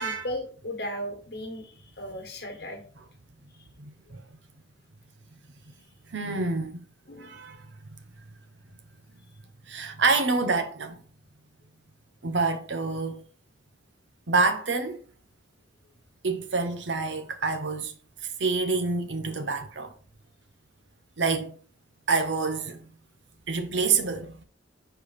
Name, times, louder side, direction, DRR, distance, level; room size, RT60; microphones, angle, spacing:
voice 1, 0.0-2.8 7.1-7.4, left 1 dB, 55° left, 1.6 m, -36 dB
voice 2, 3.8-4.2 5.7-5.8 6.1-6.8 7.2-8.0 9.7-11.0 12.2-13.3 14.3-15.0 16.2-17.9 18.4-19.9 21.2-21.6 22.1-22.9 23.5-24.4, right 4 dB, 65° right, 0.8 m, -27 dB
5.0 x 4.5 x 4.2 m
head